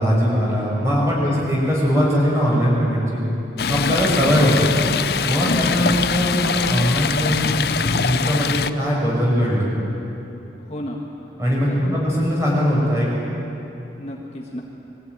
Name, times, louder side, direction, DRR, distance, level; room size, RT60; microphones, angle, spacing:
voice 1, 0.0-3.2 3.7-4.7 5.2-9.7 11.4-13.1, equal, 15° right, -5 dB, 6.2 m, -20 dB
Stream, 3.6-8.7, left 5 dB, 55° left, 0.6 m, -22 dB
voice 2, 3.7-4.2 10.6-11.4 11.7-12.0 14.0-14.6, left 1 dB, 35° left, -1 dB, 1.7 m, -33 dB
22.5 x 15.5 x 9.4 m, 3.0 s
head